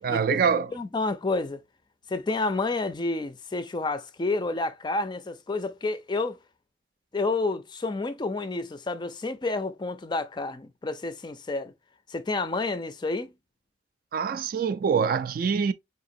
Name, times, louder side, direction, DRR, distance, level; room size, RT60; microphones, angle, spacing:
voice 1, 0.0-0.7 14.1-15.7, right 6 dB, 50° right, 0.3 m, -25 dB
voice 2, 0.7-1.6 2.1-6.4 7.1-11.7 12.1-13.3, left 3 dB, 25° left, 0.4 m, -29 dB
4.8 x 2.9 x 2.6 m
head